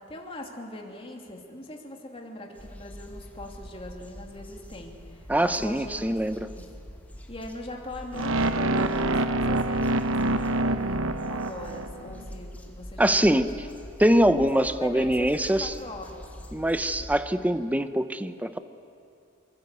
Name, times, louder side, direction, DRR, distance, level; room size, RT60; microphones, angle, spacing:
voice 1, 0.0-6.2 6.5-6.7 7.3-13.3 14.5-16.3, left 1 dB, 25° left, 1 dB, 2.8 m, -41 dB
sound 1, 2.5-17.2, equal, 10° left, 2.0 m, -44 dB
voice 2, 5.3-6.5 13.0-13.5 14.0-15.7 16.5-18.6, right 1 dB, 5° right, 11 dB, 0.8 m, -23 dB
sound 2, 8.1-12.2, right 2 dB, 70° right, 1.0 m, -26 dB
24.5 x 22.5 x 8.4 m, 2.6 s
head